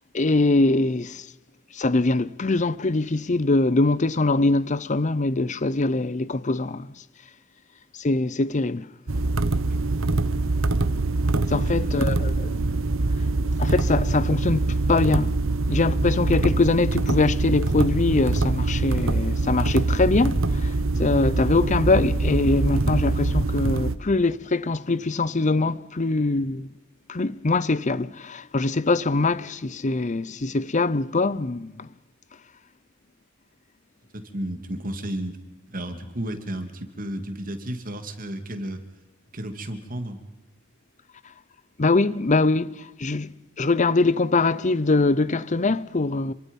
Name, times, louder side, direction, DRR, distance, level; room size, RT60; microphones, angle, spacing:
voice 1, 0.1-1.3 1.7-6.9 8.0-8.9 11.5-12.6 13.6-15.3 15.7-20.7 21.0-26.7 27.1-31.9 41.8-43.3 43.6-46.3, left 3 dB, 35° left, 0.7 m, -23 dB
sound 1, 9.1-24.0, right 2 dB, 70° right, 1.1 m, -24 dB
voice 2, 9.7-10.0 11.4-11.9 34.1-35.4 35.7-38.8 39.3-40.2, right 1 dB, 40° right, 2.5 m, -33 dB
27.0 x 23.5 x 5.4 m
head